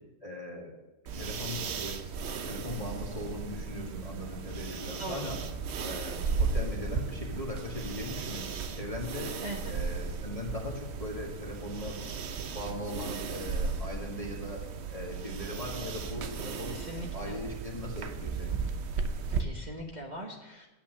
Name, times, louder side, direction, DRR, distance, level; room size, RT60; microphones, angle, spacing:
voice 1, 0.2-0.7 1.2-2.1 2.4-5.4 5.8-9.3 9.7-12.0 12.4-14.6 14.9-16.8 17.1-18.7, left 1 dB, 25° left, -2 dB, 1.8 m, -39 dB
sound 1, 1.1-19.4, right 5 dB, 55° right, 0.9 m, -35 dB
voice 2, 5.0-5.3 9.4-9.7 16.6-17.3 19.3-20.7, equal, 30° right, -2 dB, 1.2 m, -41 dB
9.2 x 8.7 x 7.4 m, 1.0 s
omnidirectional pair, 1.6 m